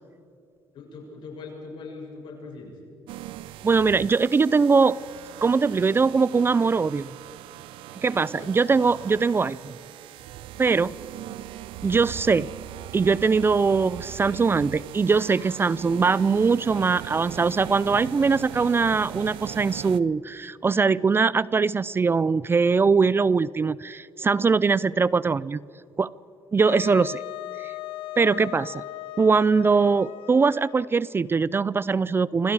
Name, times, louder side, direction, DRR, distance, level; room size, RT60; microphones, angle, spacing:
voice 1, 0.7-2.8 8.2-8.5 10.7-10.9, left 4 dB, 70° left, 0 dB, 7.6 m, -41 dB
sound 1, 3.1-20.0, right 13 dB, 80° right, 0.7 m, -40 dB
voice 2, 3.6-5.0 5.4-7.1 8.0-9.7 10.6-10.9 11.8-12.5 12.9-25.6 26.0-26.1 26.5-27.2 27.6-27.7 28.2-28.8 29.2-32.5, right 4 dB, 25° right, 20 dB, 0.4 m, -21 dB
Wind instrument woodwind instrument, 26.7-31.0, left 16 dB, 85° left, 0.7 m, -38 dB
28.0 x 26.0 x 4.9 m, 2.6 s
cardioid pair, 90°, 9 cm